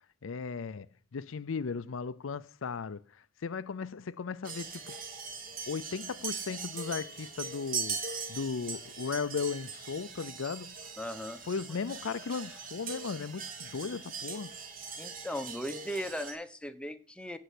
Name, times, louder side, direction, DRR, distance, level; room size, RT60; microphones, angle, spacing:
voice 1, 0.2-3.0 3.4-4.8 5.7-8.0 8.3-10.8 11.5-14.5, left 5 dB, 80° left, 0.5 m, -36 dB
sound 1, 4.4-16.3, right 5 dB, 45° right, 3.3 m, -41 dB
voice 2, 11.0-11.4 15.0-17.4, equal, 5° left, 1.0 m, -38 dB
15.5 x 5.6 x 8.4 m
head